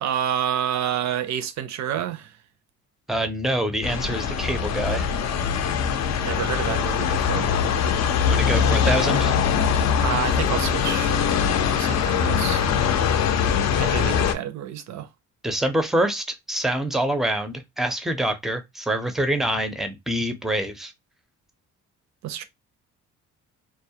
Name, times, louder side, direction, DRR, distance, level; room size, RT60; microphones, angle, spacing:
voice 1, 0.0-2.3 6.2-7.5 10.0-11.2 11.7-12.7 13.8-15.1 22.2-22.4, right 10 dB, 65° right, 0.5 m, -29 dB
voice 2, 3.1-5.1 8.2-9.4 15.4-20.9, right 1 dB, ahead, 0.4 m, -25 dB
sound 1, 3.8-14.3, left 7 dB, 60° left, 0.5 m, -22 dB
2.2 x 2.0 x 2.7 m
cardioid pair, 90°, 30 cm